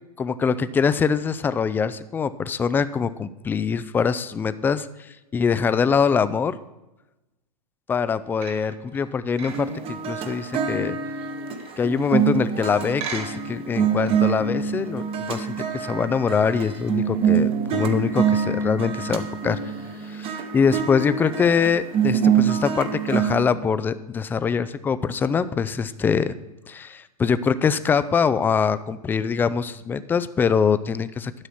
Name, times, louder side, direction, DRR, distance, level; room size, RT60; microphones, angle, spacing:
voice 1, 0.2-4.9 5.3-6.6 7.9-11.0 11.8-19.6 20.1-26.4 26.7-31.3, left 6 dB, 10° left, 14 dB, 0.3 m, -23 dB
sound 1, 8.4-12.5 13.0-13.7 14.1-14.2, right 5 dB, 45° right, 1.9 m, -39 dB
String ringz, 9.5-23.4, right 7 dB, 30° right, 0.9 m, -25 dB
11.5 x 6.1 x 5.8 m, 0.99 s
hypercardioid pair, 120°, 20 cm